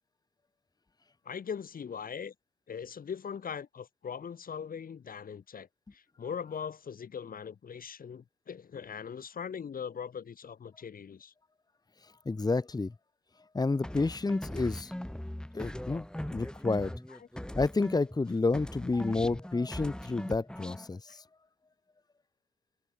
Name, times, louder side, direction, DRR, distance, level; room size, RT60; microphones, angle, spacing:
voice 1, 1.3-2.3 2.7-11.3, left 7 dB, 45° left, 2.5 m, -40 dB
voice 2, 12.0-12.9 13.5-14.9 15.5-16.1 16.3-16.9 17.5-21.2, left 3 dB, 20° left, 1.8 m, -30 dB
sound 1, 13.8-18.3 18.5-20.9, left 1 dB, 5° left, 7.5 m, -40 dB
cardioid pair, 90°, 20 cm